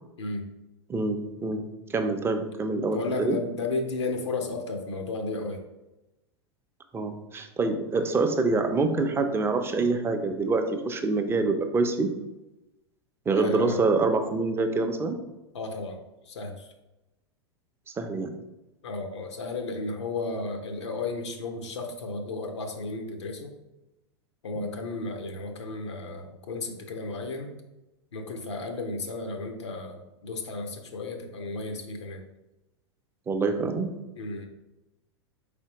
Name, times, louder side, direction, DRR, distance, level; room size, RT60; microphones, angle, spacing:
voice 1, 0.2-0.5 2.9-5.6 13.3-13.8 15.5-16.0 16.2-16.7 18.8-23.5 24.4-27.5 28.1-32.2 34.2-34.5, left 3 dB, 75° left, 4 dB, 0.6 m, -33 dB
voice 2, 0.9-1.6 1.9-3.4 6.9-12.1 13.3-15.2 17.9-18.4 24.6-24.8 33.3-33.9, right 3 dB, 15° right, 6 dB, 0.5 m, -26 dB
4.3 x 3.4 x 2.9 m, 0.98 s
hypercardioid pair, 95°, 15 cm